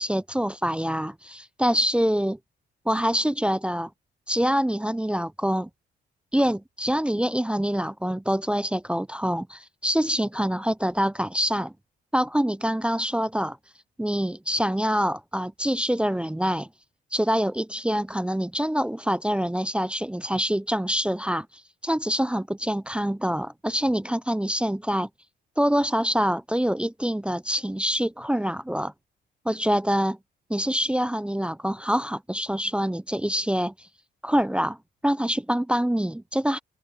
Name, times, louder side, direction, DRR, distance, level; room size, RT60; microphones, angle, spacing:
voice 1, 0.0-2.4 2.9-3.9 4.3-5.7 6.3-11.7 12.1-13.6 14.0-16.7 17.1-21.5 21.8-25.1 25.6-28.9 29.5-30.2 30.5-33.9 34.2-34.8 35.0-36.6, equal, 5° right, 0.5 m, -25 dB
cardioid pair, 90°, 20 cm